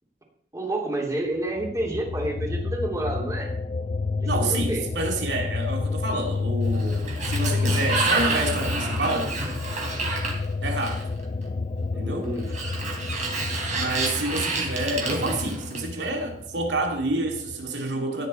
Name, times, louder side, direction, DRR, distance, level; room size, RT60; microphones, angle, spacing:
voice 1, 0.5-3.5 4.2-4.8 11.9-12.5, right 1 dB, 20° right, 0 dB, 3.0 m, -29 dB
sound 1, 1.6-17.7, left 3 dB, 35° left, 0.4 m, -30 dB
voice 2, 4.3-9.4 10.6-11.0 11.9-12.3 13.7-18.3, right 2 dB, 85° right, 2 dB, 2.5 m, -28 dB
Sliding door, 6.6-11.2 12.4-16.1, right 3 dB, 45° right, 4.0 m, -29 dB
16.5 x 9.8 x 4.4 m, 0.65 s
head